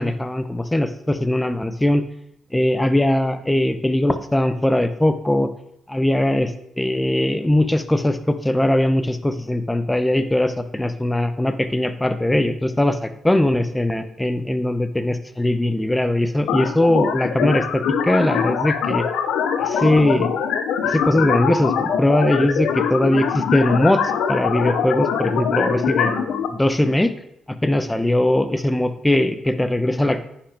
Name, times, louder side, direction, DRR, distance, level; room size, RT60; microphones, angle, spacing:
voice 1, 0.0-2.0 2.5-5.5 5.9-6.5 6.8-19.0 19.6-20.3 20.8-24.0 24.3-27.1 27.6-30.2, left 1 dB, 10° left, 10 dB, 0.8 m, -20 dB
sound 1, 16.5-26.5, left 7 dB, 75° left, 0.7 m, -23 dB
9.6 x 6.0 x 3.5 m, 0.76 s
hypercardioid pair, 45°, 0 cm